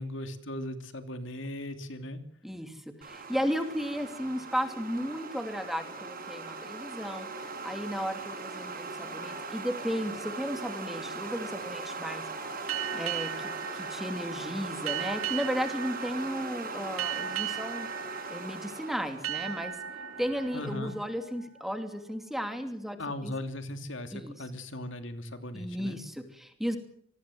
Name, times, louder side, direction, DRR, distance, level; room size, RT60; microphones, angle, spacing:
voice 1, 0.0-2.2 20.5-20.9 23.0-26.0, left 1 dB, 60° left, 8 dB, 2.9 m, -38 dB
voice 2, 2.4-7.3 7.6-12.2 12.9-17.9 18.3-19.8 20.2-23.0 23.2-23.3 24.1-24.3 25.5-26.8, equal, ahead, 7 dB, 2.6 m, -34 dB
sound 1, 3.0-20.8, right 3 dB, 45° right, 7.6 m, -40 dB
sound 2, 12.7-22.0, right 9 dB, 90° right, 3.1 m, -38 dB
27.0 x 19.5 x 7.8 m, 0.66 s
head